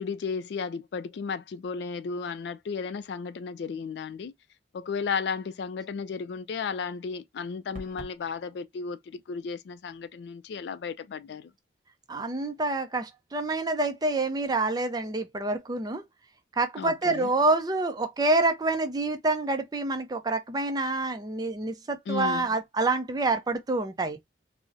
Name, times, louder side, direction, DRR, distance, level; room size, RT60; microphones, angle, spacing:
voice 1, 0.0-4.3 4.7-11.5 16.8-17.3 22.1-22.5, left 5 dB, 65° left, 0.3 m, -34 dB
sound 1, 7.7-8.2, equal, 40° right, 0.9 m, -42 dB
voice 2, 12.1-16.0 16.6-24.2, right 2 dB, 20° right, 0.4 m, -27 dB
3.7 x 2.0 x 2.5 m
head